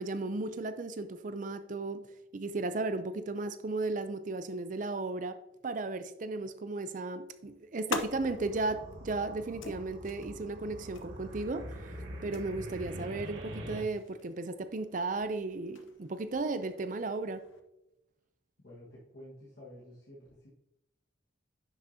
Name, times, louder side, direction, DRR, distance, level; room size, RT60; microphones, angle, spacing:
voice 1, 0.0-2.1 2.3-5.4 5.6-17.4, right 3 dB, 40° right, 0.5 m, -35 dB
sound 1, 7.2-17.6, left 3 dB, 85° left, 0.9 m, -46 dB
sound 2, 8.1-13.8, equal, 85° right, 3.0 m, -44 dB
voice 2, 18.6-20.5, left 1 dB, 55° left, 1.6 m, -51 dB
10.5 x 6.2 x 2.8 m
head